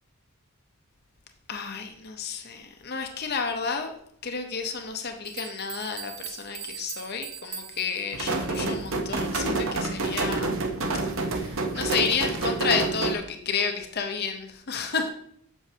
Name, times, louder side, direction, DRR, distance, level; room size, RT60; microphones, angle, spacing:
voice 1, 1.5-3.9 4.2-10.6 11.2-15.1, left 5 dB, 45° left, 4 dB, 0.7 m, -31 dB
sound 1, 5.3-9.0, right 8 dB, 85° right, 1.0 m, -41 dB
sound 2, 8.1-13.1, right 3 dB, 60° right, 0.9 m, -28 dB
8.1 x 6.4 x 2.8 m, 0.67 s
head